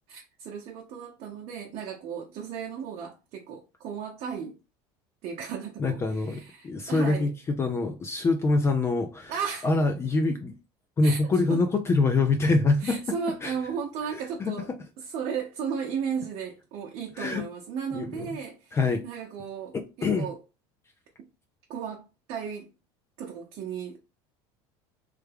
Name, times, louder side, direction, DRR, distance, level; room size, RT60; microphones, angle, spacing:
voice 1, 0.1-4.6 5.2-7.3 9.3-9.7 11.0-11.2 11.5-11.6 12.8-14.7 15.0-18.8 19.0-20.4 21.7-22.7 23.2-24.0, right 7 dB, 55° right, 0.7 m, -35 dB
voice 2, 5.8-9.3 9.6-10.5 11.0-13.2 13.4-13.5 14.4-14.8 17.2-17.5 17.9-18.3 18.7-19.0 19.7-20.3, left 3 dB, 20° left, 0.4 m, -25 dB
3.3 x 2.2 x 3.3 m
supercardioid pair, 125°, 12 cm